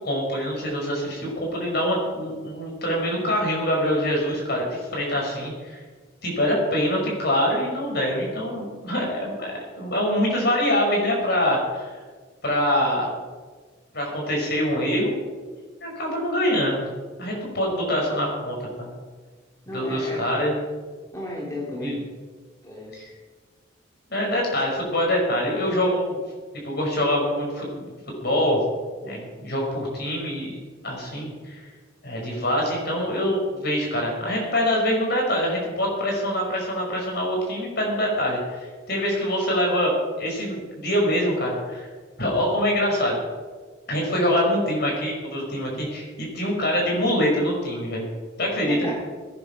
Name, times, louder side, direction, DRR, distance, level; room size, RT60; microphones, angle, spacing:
voice 1, 0.0-5.8 6.2-11.9 12.4-13.1 13.9-15.1 15.8-16.9 17.2-18.9 19.7-20.6 21.8-22.0 23.0-23.1 24.1-26.2 26.6-27.9 28.2-28.6 29.0-30.5 30.8-31.6 32.0-38.6 38.9-41.9 42.2-43.2 43.9-48.1 48.4-48.8, equal, 50° left, -1 dB, 5.6 m, -24 dB
voice 2, 19.7-20.2 21.1-22.0 22.6-23.1 48.7-49.0, left 1 dB, 15° left, -4 dB, 2.5 m, -33 dB
18.0 x 10.0 x 6.0 m, 1.4 s
head